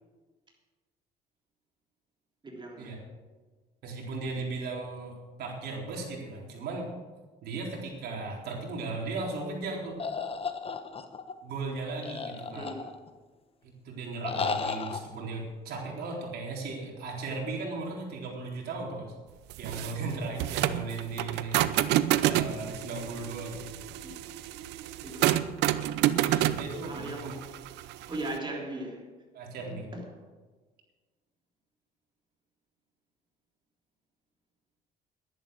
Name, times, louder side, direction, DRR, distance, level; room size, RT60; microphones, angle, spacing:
voice 1, 2.4-2.9 12.5-12.8 24.0-24.2 25.0-25.3 26.8-27.4 28.1-29.1 29.7-30.2, right 2 dB, 25° right, 3.4 m, -38 dB
voice 2, 3.8-6.9 7.4-10.0 11.4-12.7 13.6-19.1 19.6-21.6 21.8-23.7 26.1-27.3 29.3-29.9, right 3 dB, 70° right, 3.9 m, -37 dB
sound 1, 10.0-11.3 12.0-13.2 14.2-15.0, left 5 dB, 35° left, 1.1 m, -34 dB
sound 2, 19.5-28.4, right 13 dB, 85° right, 0.6 m, -28 dB
11.5 x 11.0 x 6.5 m
cardioid pair, 110°, 17 cm